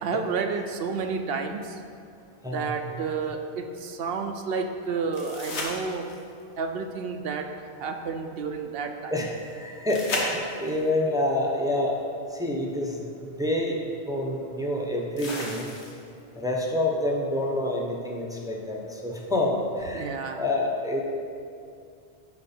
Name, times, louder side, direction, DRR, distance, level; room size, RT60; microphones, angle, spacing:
voice 1, 0.0-1.8 2.4-6.1 6.6-7.5 7.8-9.1 19.9-20.4, right 5 dB, 65° right, 5 dB, 0.7 m, -30 dB
sound 1, 5.1-6.4 9.9-10.9 12.8-12.9 15.2-16.2 19.1-19.2, left 2 dB, 85° left, 1.4 m, -33 dB
voice 2, 9.1-12.0 12.3-15.7 16.4-20.1 20.4-21.0, left 1 dB, 5° right, -2 dB, 0.6 m, -27 dB
8.8 x 5.0 x 4.3 m, 2.4 s
omnidirectional pair, 1.1 m